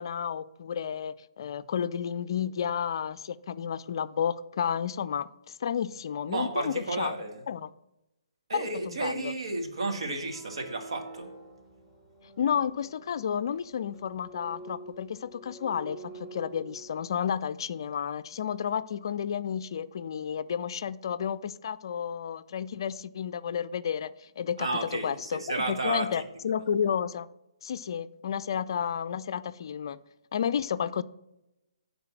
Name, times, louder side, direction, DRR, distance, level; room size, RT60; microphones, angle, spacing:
voice 1, 0.0-7.1 7.5-7.7 8.5-9.3 12.4-25.4 25.7-27.3 27.6-30.0 30.3-31.0, left 8 dB, 55° left, 0.4 m, -31 dB
voice 2, 6.3-7.4 8.5-11.3 24.6-26.1 26.5-26.6, right 3 dB, 70° right, 1.8 m, -32 dB
sound 1, 10.2-17.1, right 3 dB, ahead, 3.2 m, -48 dB
9.5 x 4.0 x 7.2 m
figure-of-eight pair, 135°, 3 cm